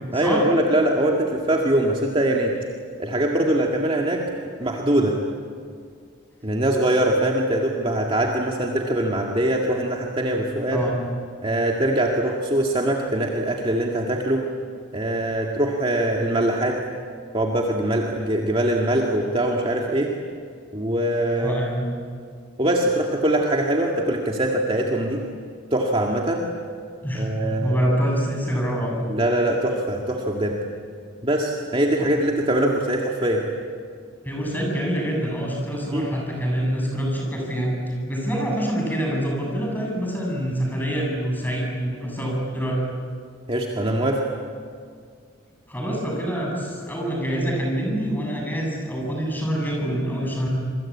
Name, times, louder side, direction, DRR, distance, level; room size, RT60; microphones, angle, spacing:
voice 1, 0.1-2.5 3.0-4.2 4.6-5.2 6.4-10.8 11.4-14.4 14.9-16.8 17.3-20.1 20.7-21.5 22.6-25.2 25.7-26.4 27.1-27.7 29.1-30.6 31.2-33.4 35.9-36.1 43.5-44.2, right 1 dB, 25° right, 0 dB, 2.1 m, -22 dB
voice 2, 21.4-21.9 27.0-29.1 34.2-42.8 45.7-50.5, equal, 10° left, -1 dB, 7.4 m, -26 dB
27.0 x 24.0 x 8.8 m, 2.1 s
head